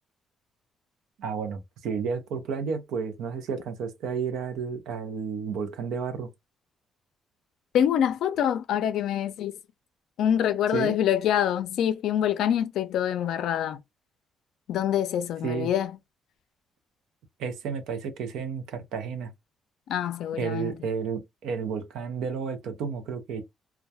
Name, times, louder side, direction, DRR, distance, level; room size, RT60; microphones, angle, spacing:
voice 1, 1.2-6.3 10.7-11.0 15.4-15.7 17.4-19.3 20.4-23.4, right 6 dB, 85° right, 0.5 m, -31 dB
voice 2, 7.7-9.6 10.2-13.8 14.7-16.0 19.9-20.7, left 10 dB, 80° left, 0.4 m, -25 dB
2.2 x 2.2 x 2.7 m
cardioid pair, 90°, 0 cm